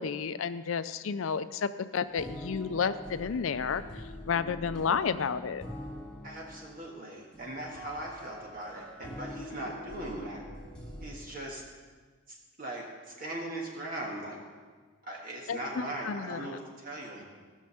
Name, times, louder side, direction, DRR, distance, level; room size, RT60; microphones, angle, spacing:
voice 1, 0.0-5.6 15.5-16.5, left 6 dB, 75° left, 12 dB, 0.5 m, -31 dB
sound 1, 2.0-11.2, left 1 dB, 5° left, 1.8 m, -44 dB
voice 2, 6.2-10.4 11.0-11.6 12.3-14.4 15.0-17.2, right 1 dB, 40° right, -2 dB, 1.8 m, -39 dB
15.5 x 6.4 x 7.1 m, 1.5 s
head